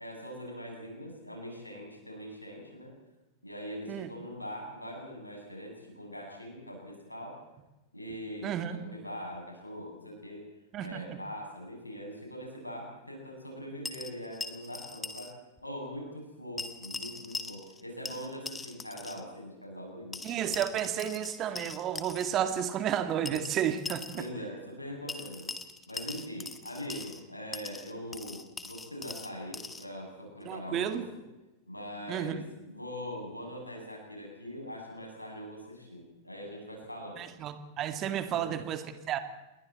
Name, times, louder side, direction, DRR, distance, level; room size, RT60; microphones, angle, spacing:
voice 1, 0.0-2.9 3.4-7.4 7.9-10.4 10.8-15.3 15.6-20.2 24.1-25.5 25.9-31.2 31.7-37.2 38.2-38.5, equal, 85° left, 0 dB, 7.7 m, -42 dB
voice 2, 8.4-8.8 10.7-11.2 20.2-24.0 30.5-31.0 32.1-32.4 37.2-39.2, right 10 dB, 35° right, 9 dB, 2.1 m, -32 dB
sound 1, 13.8-15.3 15.6-15.7 16.6-17.8 18.1-19.2 20.1-22.3 23.3-24.3 25.1-27.2 27.5-29.9, left 3 dB, 10° left, 1.7 m, -41 dB
29.0 x 22.0 x 4.3 m, 1.0 s
figure-of-eight pair, 90°, 0 cm